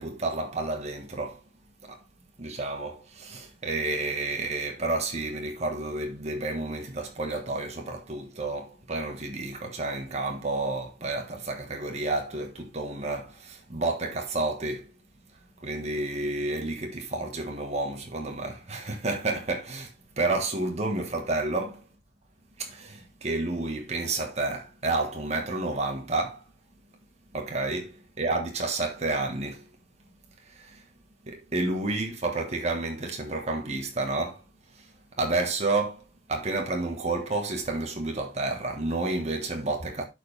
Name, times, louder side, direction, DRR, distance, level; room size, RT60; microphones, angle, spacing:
voice 1, 0.0-1.4 1.9-2.0 2.4-14.9 15.6-19.9 20.2-21.8 22.6-26.4 27.3-27.8 28.2-29.6 31.3-34.4 35.2-36.0 36.3-40.0, right 2 dB, 35° right, 1.5 m, -30 dB
11.5 x 4.6 x 3.4 m
head